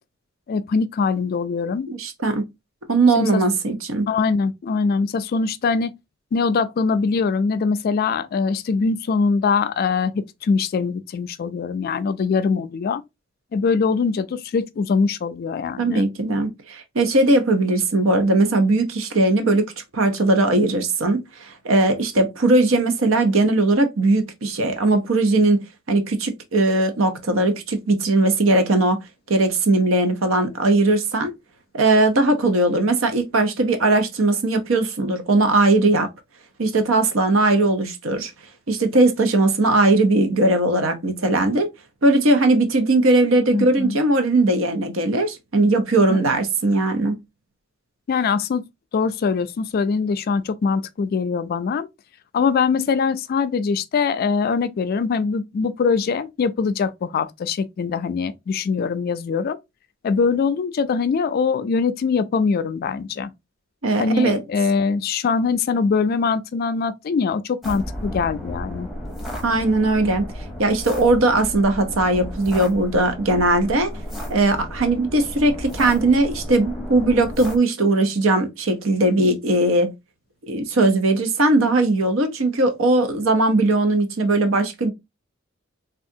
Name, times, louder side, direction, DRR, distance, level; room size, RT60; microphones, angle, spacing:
voice 1, 0.5-1.9 3.1-3.4 4.1-5.9 6.3-13.0 13.5-16.1 43.5-44.0 46.1-46.2 48.1-48.6 48.9-51.9 52.3-59.6 60.0-63.3 64.0-68.9, left 5 dB, 50° left, 0.3 m, -22 dB
voice 2, 1.9-2.4 2.9-4.1 15.8-25.6 25.9-29.0 29.3-31.3 31.7-36.1 36.6-38.3 38.7-41.7 42.0-47.2 63.8-64.4 69.4-70.2 70.6-73.9 74.3-79.9 80.4-84.9, right 2 dB, 85° right, 0.7 m, -19 dB
walking in snowstorm, 67.6-77.6, equal, ahead, 0.8 m, -33 dB
3.4 x 2.4 x 2.6 m
head